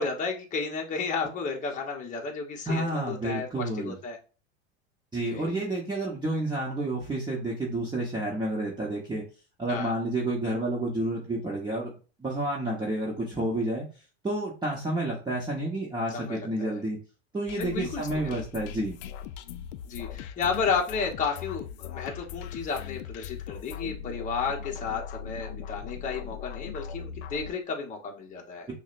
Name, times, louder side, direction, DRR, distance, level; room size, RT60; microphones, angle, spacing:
voice 1, 0.0-4.2 5.2-5.6 9.7-9.9 16.1-16.8 17.6-18.1 19.8-28.7, left 5 dB, 25° left, 0 dB, 0.9 m, -32 dB
voice 2, 2.7-4.0 5.1-9.2 9.6-13.8 14.2-17.0 17.3-19.0, right 1 dB, 15° right, -4 dB, 1.1 m, -30 dB
sound 1, 17.5-27.5, left 8 dB, 75° left, 0.5 m, -39 dB
5.9 x 2.3 x 2.5 m, 0.34 s
supercardioid pair, 115°, 33 cm